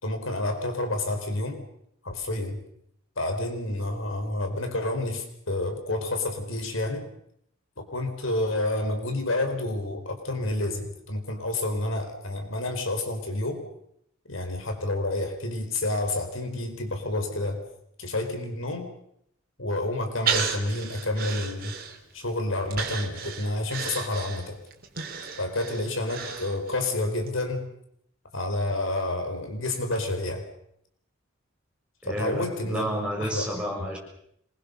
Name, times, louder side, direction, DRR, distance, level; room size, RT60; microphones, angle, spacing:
voice 1, 0.0-1.6 2.0-2.6 3.2-7.1 7.8-13.6 14.3-17.6 18.0-18.9 19.6-21.7 22.1-24.6 25.4-27.7 28.3-30.5 32.0-33.4, left 2 dB, 75° left, 5 dB, 4.5 m, -29 dB
Breathing, 20.3-22.2 22.7-26.9 27.3-27.4, right 6 dB, 45° right, 3.3 m, -33 dB
voice 2, 32.0-34.0, equal, 5° right, -2 dB, 6.6 m, -31 dB
26.5 x 21.5 x 6.9 m, 0.73 s
head